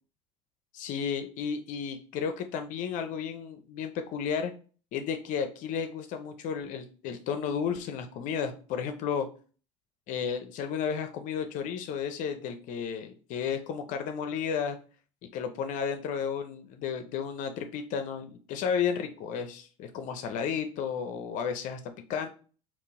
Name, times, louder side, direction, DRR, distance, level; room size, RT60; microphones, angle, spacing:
voice 1, 0.7-4.5 4.9-9.3 10.1-14.8 15.3-21.8 22.1-22.3, left 7 dB, 60° left, 7 dB, 0.5 m, -33 dB
3.7 x 2.5 x 3.6 m, 0.38 s
supercardioid pair, 90°, 15 cm